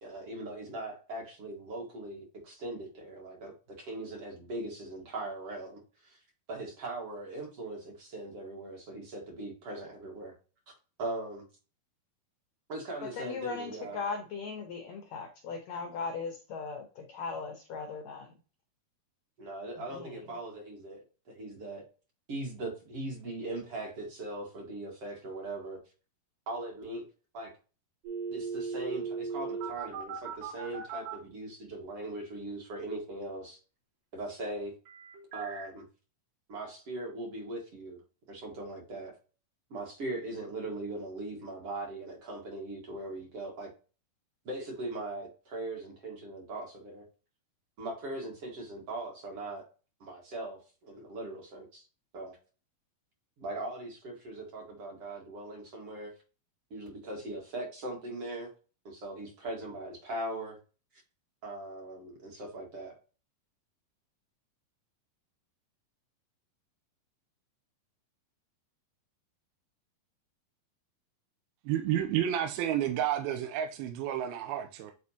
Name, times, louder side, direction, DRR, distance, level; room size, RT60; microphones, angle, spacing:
voice 1, 0.0-6.2 6.5-10.3 11.0-11.4 12.7-14.0 19.4-21.0 21.3-21.8 22.3-25.8 26.5-27.1 27.3-27.5 28.3-33.6 34.1-34.7 35.3-35.8 36.5-38.0 38.3-39.2 39.7-43.7 44.5-47.0 47.8-49.6 50.0-51.8 52.1-52.4 53.4-56.1 56.7-58.5 58.9-60.6 61.4-63.0, right 2 dB, 50° right, 2.0 m, -40 dB
voice 2, 13.2-18.3 19.9-20.1, left 4 dB, 80° left, 1.6 m, -38 dB
sound 1, 28.0-31.1 34.9-35.7, right 5 dB, 70° right, 4.5 m, -37 dB
voice 3, 71.7-74.9, right 10 dB, 85° right, 2.5 m, -30 dB
9.5 x 4.3 x 2.8 m
omnidirectional pair, 4.3 m